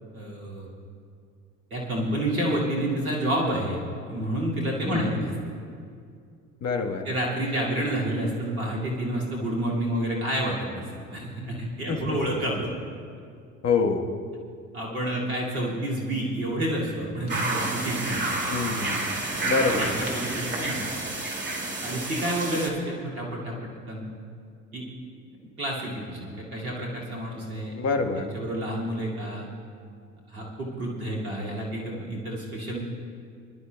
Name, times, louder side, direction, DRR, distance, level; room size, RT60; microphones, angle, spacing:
voice 1, 0.1-0.7 1.7-3.8 4.0-5.1 7.1-10.8 11.1-12.7 14.7-18.4 19.3-20.9 21.8-24.1 24.7-24.8 25.6-27.7 28.2-29.5 30.3-32.8, right 1 dB, 90° right, -4 dB, 2.5 m, -29 dB
voice 2, 4.9-5.3 6.6-7.1 11.9-12.2 13.6-14.1 18.4-19.0 19.4-19.9 27.7-28.3, left 4 dB, 40° left, 4 dB, 1.5 m, -26 dB
sound 1, 17.3-22.7, right 2 dB, 25° right, 2.4 m, -29 dB
25.0 x 12.0 x 2.3 m, 2.3 s
hypercardioid pair, 60°, 41 cm